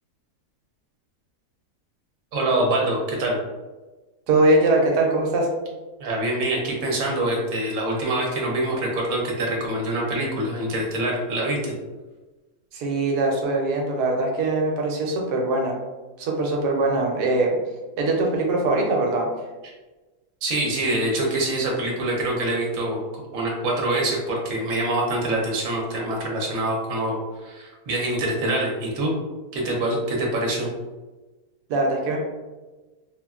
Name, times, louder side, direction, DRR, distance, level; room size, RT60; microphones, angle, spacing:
voice 1, 2.3-3.4 6.0-11.7 20.4-27.2 27.4-29.1 29.5-30.7, right 1 dB, 65° right, -2 dB, 1.1 m, -25 dB
voice 2, 4.3-5.5 12.7-15.8 16.2-17.5 18.0-19.3 31.7-32.2, right 2 dB, 90° right, 0 dB, 1.2 m, -22 dB
3.3 x 2.2 x 2.3 m, 1.2 s
omnidirectional pair, 1.7 m